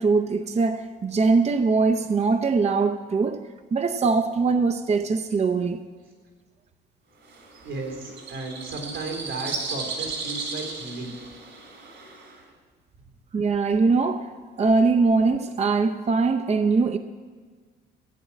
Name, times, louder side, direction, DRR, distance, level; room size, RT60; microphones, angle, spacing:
voice 1, 0.0-3.4 3.7-5.8 13.3-14.3 14.6-17.0, right 4 dB, 35° right, 0.7 m, -22 dB
sound 1, 7.2-12.4, right 4 dB, 65° right, 3.1 m, -35 dB
voice 2, 7.6-11.1, right 3 dB, 85° right, 4.2 m, -34 dB
15.5 x 8.6 x 7.6 m
cardioid pair, 90°, 20 cm